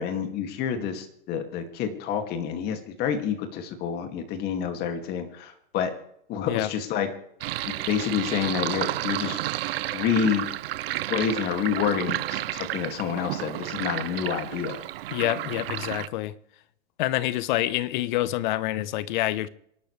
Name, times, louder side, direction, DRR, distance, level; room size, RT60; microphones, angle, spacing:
voice 1, 0.0-5.9 6.3-7.1 7.6-9.4 9.9-10.5 11.1-14.8, left 8 dB, 35° left, 2.4 m, -28 dB
Sink (filling or washing), 7.4-16.1, right 15 dB, 80° right, 0.6 m, -31 dB
voice 2, 15.1-16.3 17.0-19.5, left 15 dB, 55° left, 1.0 m, -27 dB
26.5 x 12.0 x 3.3 m
supercardioid pair, 145°, 29 cm